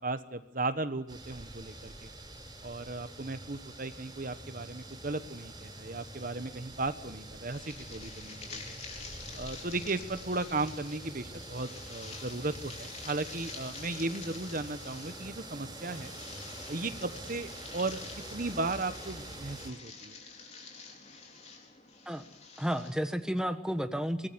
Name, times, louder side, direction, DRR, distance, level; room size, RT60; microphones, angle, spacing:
voice 1, 0.0-2.1 2.6-8.8 9.3-16.1 16.7-20.2, right 2 dB, 45° right, 11 dB, 1.1 m, -36 dB
sound 1, 1.1-19.7, right 2 dB, 20° right, 5.3 m, -46 dB
sound 2, 7.5-23.1, left 4 dB, 35° left, 4.7 m, -48 dB
voice 2, 22.6-24.3, equal, 5° right, 8 dB, 1.3 m, -32 dB
24.5 x 19.5 x 9.4 m, 0.98 s
head